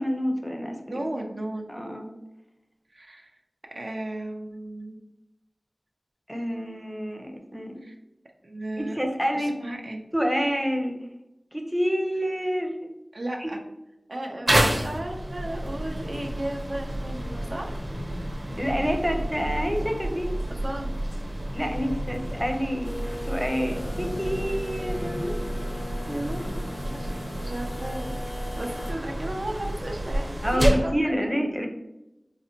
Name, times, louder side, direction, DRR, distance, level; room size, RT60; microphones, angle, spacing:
voice 1, 0.0-1.0 1.7-2.1 6.3-7.8 8.8-9.5 10.1-10.9 11.5-12.8 13.4-13.5 18.6-20.3 21.5-22.9 23.3-25.4 26.1-26.4 30.4-30.6 30.9-31.7, equal, ahead, 3 dB, 0.5 m, -28 dB
voice 2, 0.8-1.7 2.9-3.3 3.7-5.0 7.8-7.9 8.4-9.0 9.3-10.0 13.1-13.6 14.1-17.8 20.6-20.9 26.8-28.1 28.5-31.3, right 1 dB, 70° right, 1 dB, 0.5 m, -33 dB
sound 1, 14.5-30.9, right 1 dB, 35° right, 0.7 m, -30 dB
sound 2, 22.8-28.9, left 1 dB, 70° left, 0.6 m, -39 dB
3.9 x 2.1 x 2.7 m, 0.92 s
wide cardioid pair, 50°, 0 cm